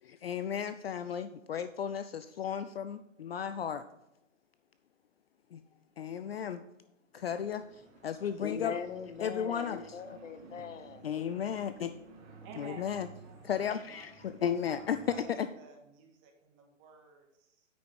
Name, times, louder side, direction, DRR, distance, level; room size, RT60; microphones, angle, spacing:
voice 1, 0.0-3.9 5.5-5.6 6.0-6.7 7.1-8.8 9.2-10.2 11.0-12.0 12.5-13.1 13.4-15.5, left 8 dB, 50° left, 11 dB, 0.5 m, -34 dB
sound 1, 7.1-15.2, right 4 dB, 55° right, 2.6 m, -55 dB
voice 2, 8.4-11.0, left 6 dB, 70° left, 11 dB, 1.0 m, -41 dB
voice 3, 12.4-13.0 13.2-13.6 13.9-14.0 14.7-14.8 15.1-15.3 15.6-17.7, right 5 dB, 25° right, 2 dB, 1.7 m, -52 dB
9.3 x 6.1 x 4.8 m, 0.88 s
hypercardioid pair, 155°, 39 cm